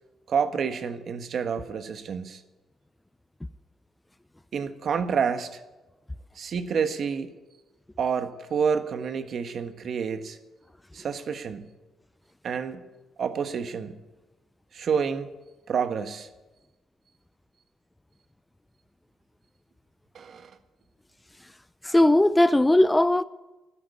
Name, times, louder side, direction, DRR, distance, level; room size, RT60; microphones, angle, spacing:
voice 1, 0.3-2.4 4.5-5.6 6.3-7.3 8.0-10.4 10.9-11.6 12.4-12.8 13.2-14.0 14.7-15.3 15.7-16.3 20.1-20.5, right 6 dB, 55° right, 1.4 m, -28 dB
voice 2, 21.8-23.2, left 1 dB, 10° left, 0.5 m, -18 dB
13.0 x 10.5 x 9.5 m
cardioid pair, 90°, 0 cm